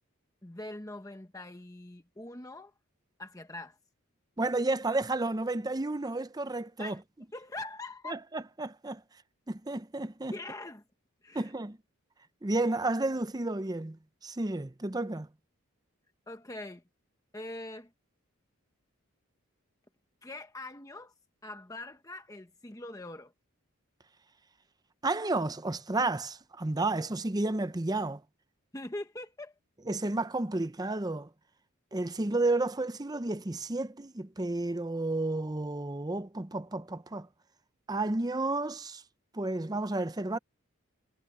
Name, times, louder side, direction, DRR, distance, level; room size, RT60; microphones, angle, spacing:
voice 1, 0.4-2.7 3.2-3.8 6.8-7.0 7.3-8.1 10.3-10.8 11.2-11.5 16.3-16.8 17.3-17.9 20.2-21.1 21.4-23.3 28.7-29.5, left 2 dB, 15° left, 1.0 m, -42 dB
voice 2, 4.4-7.0 8.1-9.0 9.5-10.3 11.3-11.8 12.4-15.3 25.0-28.2 29.9-31.3 31.9-37.3 37.9-39.0 39.3-40.4, right 2 dB, 20° right, 0.6 m, -31 dB
head